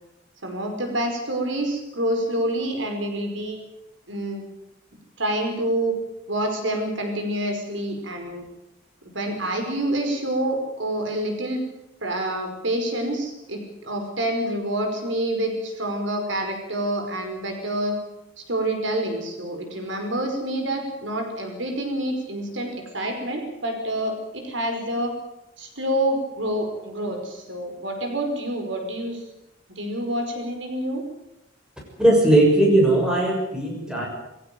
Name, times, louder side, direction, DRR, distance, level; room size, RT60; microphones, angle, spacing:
voice 1, 0.4-3.6 4.1-4.4 5.2-6.0 6.3-8.4 9.0-11.6 12.0-18.0 18.5-25.1 25.6-29.3 29.8-31.0, right 1 dB, 70° right, 4 dB, 5.2 m, -27 dB
voice 2, 32.0-34.1, right 1 dB, 5° right, -1 dB, 6.6 m, -18 dB
22.5 x 16.5 x 9.3 m, 0.90 s
head